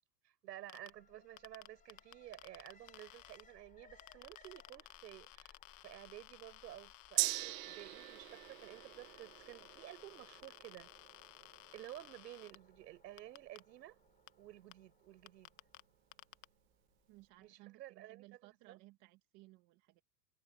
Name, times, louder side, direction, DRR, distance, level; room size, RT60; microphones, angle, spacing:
voice 1, 0.2-10.9 11.7-14.0 14.4-15.5 17.4-18.8, right 14 dB, 90° right, 7.8 m, -53 dB
sound 1, 0.7-0.9 1.4-3.4 4.0-12.6 13.2-13.6 14.3-14.4 14.7-14.8 15.3-15.8 16.1-16.4, left 21 dB, 55° left, 1.0 m, -57 dB
Alarm, 0.9-17.0 17.3-17.4, left 6 dB, 15° left, 4.2 m, -68 dB
Gong, 7.2-14.9 15.3-15.4, right 20 dB, 55° right, 1.2 m, -43 dB
voice 2, 17.1-20.0, right 20 dB, 40° right, 1.8 m, -60 dB
supercardioid pair, 160°, 49 cm